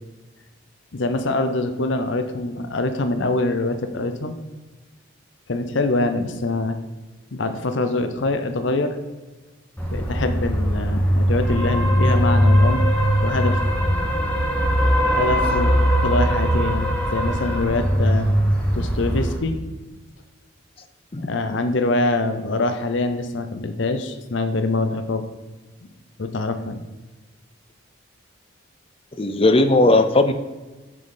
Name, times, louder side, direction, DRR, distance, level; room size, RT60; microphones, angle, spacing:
voice 1, 0.9-4.4 5.5-6.8 7.3-9.0 9.9-12.8 13.2-14.1 15.2-15.7 16.0-18.3 18.7-19.6 21.2-25.3 25.8-25.9 26.2-26.8, left 2 dB, 65° left, 8 dB, 0.7 m, -24 dB
sound 1, 9.8-19.4, equal, 5° left, 1.2 m, -20 dB
voice 2, 29.2-30.3, left 2 dB, 25° left, 9 dB, 0.5 m, -16 dB
7.4 x 6.4 x 3.9 m, 1.2 s
head